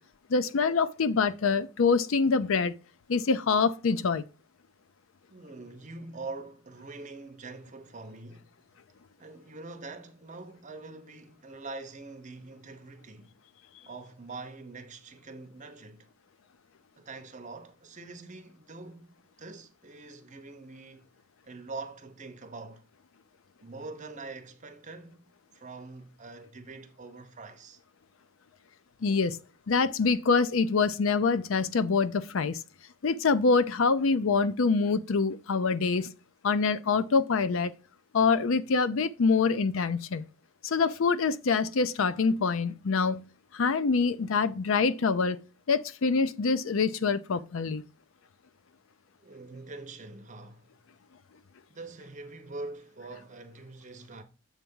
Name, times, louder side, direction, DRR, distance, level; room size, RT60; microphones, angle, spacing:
voice 1, 0.3-2.7 3.1-4.2 29.0-29.4 29.7-32.6 33.0-36.1 36.4-37.7 38.1-40.2 40.6-43.3 43.5-45.4 45.7-47.8, left 4 dB, 75° left, 0.5 m, -25 dB
voice 2, 5.3-8.5 9.2-13.4 13.9-16.1 17.0-21.1 21.4-22.9 23.6-25.3 25.5-27.8 49.2-50.7 51.7-54.2, right 3 dB, 35° right, 0.9 m, -44 dB
7.2 x 3.4 x 5.5 m
head